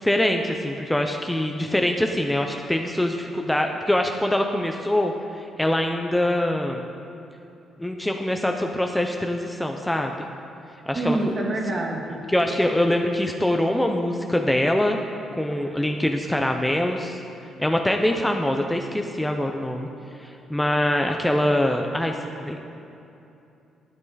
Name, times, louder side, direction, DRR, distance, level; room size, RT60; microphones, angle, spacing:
voice 1, 0.0-6.9 7.8-10.2 10.9-11.2 12.3-15.0 15.4-17.2 17.6-19.9 20.2-22.6, left 1 dB, 5° left, 3 dB, 0.6 m, -24 dB
voice 2, 10.9-12.2 12.5-12.9 15.5-15.7, right 2 dB, 40° right, -1 dB, 1.9 m, -28 dB
12.0 x 8.9 x 4.1 m, 2.8 s
cardioid pair, 90°, 0 cm